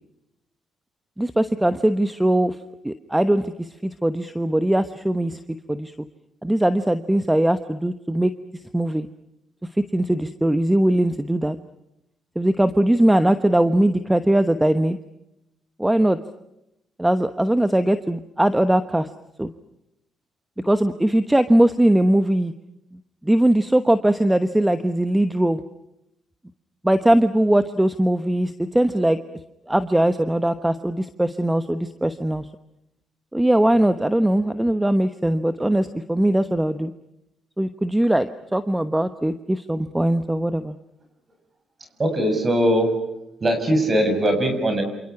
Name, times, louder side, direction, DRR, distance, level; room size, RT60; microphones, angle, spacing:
voice 1, 1.2-2.5 2.8-5.4 5.7-5.9 6.4-8.3 8.7-9.1 9.9-11.6 12.4-15.0 15.8-16.2 17.0-19.1 19.4-19.5 20.7-22.5 23.2-25.6 26.8-29.2 29.7-32.4 33.3-36.9 37.6-40.7, right 1 dB, 10° right, 10 dB, 1.1 m, -20 dB
voice 2, 42.0-42.9 43.4-44.8, equal, 30° right, 6 dB, 6.8 m, -20 dB
28.0 x 27.5 x 5.9 m, 0.85 s
cardioid pair, 90°, 0 cm